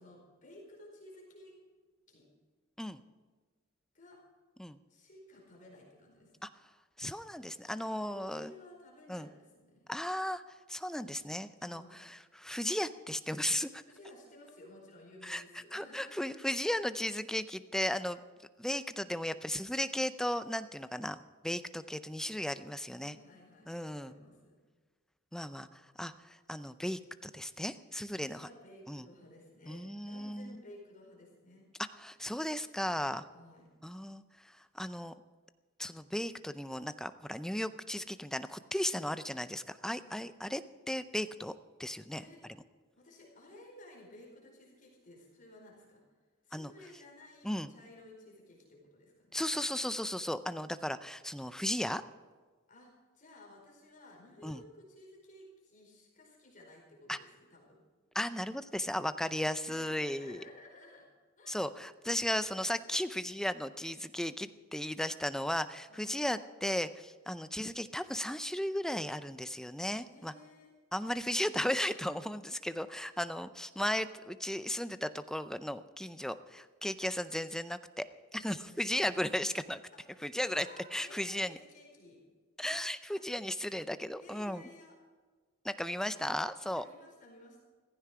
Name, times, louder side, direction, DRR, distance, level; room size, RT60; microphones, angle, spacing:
voice 1, 0.0-1.5 2.1-2.3 3.9-4.2 4.9-6.5 7.9-9.9 11.6-12.0 13.8-16.2 22.9-24.6 28.2-31.7 33.3-33.7 39.9-40.2 42.1-42.4 42.9-46.0 46.4-49.4 52.7-52.9 53.1-57.8 59.6-61.1 61.4-61.6 65.9-66.2 70.0-70.7 78.4-79.2 79.9-80.0 80.4-82.2 83.1-83.2 84.2-85.0 86.7-87.6, left 1 dB, 40° left, -1 dB, 4.6 m, -55 dB
voice 2, 7.0-8.5 9.1-9.3 9.9-13.8 15.2-18.2 18.6-23.2 23.7-24.1 25.3-28.5 28.9-29.1 29.7-30.6 31.9-33.3 33.8-35.1 35.8-40.6 40.9-41.5 41.8-42.2 46.5-46.7 47.4-47.7 49.3-52.0 54.4-54.6 57.1-57.2 58.1-60.4 61.5-70.3 70.9-78.0 78.3-79.8 80.2-81.6 82.6-84.7 85.6-86.8, left 1 dB, 5° left, 12 dB, 0.5 m, -36 dB
16.0 x 15.0 x 4.9 m, 1.4 s
head